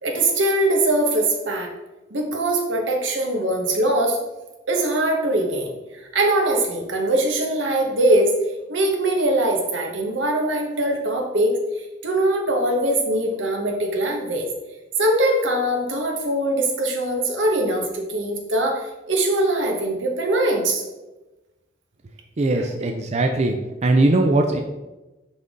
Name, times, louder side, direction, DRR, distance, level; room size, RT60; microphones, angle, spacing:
voice 1, 0.0-1.7 2.1-4.2 4.7-5.7 6.1-8.3 8.7-14.5 15.0-20.8 22.6-22.7, right 1 dB, 80° right, 1 dB, 1.3 m, -22 dB
voice 2, 22.4-23.6 23.8-24.6, right 2 dB, 35° right, 4 dB, 0.4 m, -19 dB
5.9 x 5.3 x 3.7 m, 1.1 s
head